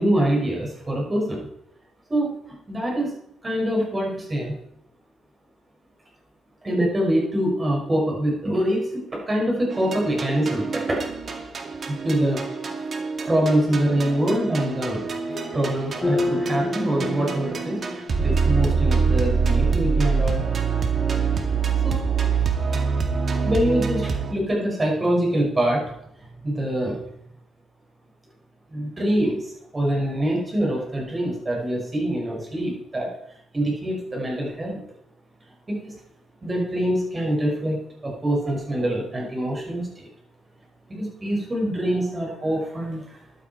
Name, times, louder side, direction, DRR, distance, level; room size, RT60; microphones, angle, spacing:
voice 1, 0.0-1.5 2.1-3.1 3.4-4.5 6.6-11.1 11.9-12.4 13.3-15.0 15.5-20.4 21.8-22.0 22.7-22.8 23.4-27.3 28.7-33.1 33.5-34.8 35.7-36.0 36.4-40.1 40.9-43.2, right 1 dB, 25° right, -1 dB, 6.5 m, -25 dB
sound 1, 9.7-24.3, right 5 dB, 45° right, 2.2 m, -25 dB
sound 2, 15.3-19.7, left 1 dB, 25° left, 6.8 m, -31 dB
15.5 x 11.5 x 4.7 m, 0.76 s
cardioid pair, 90°, 0 cm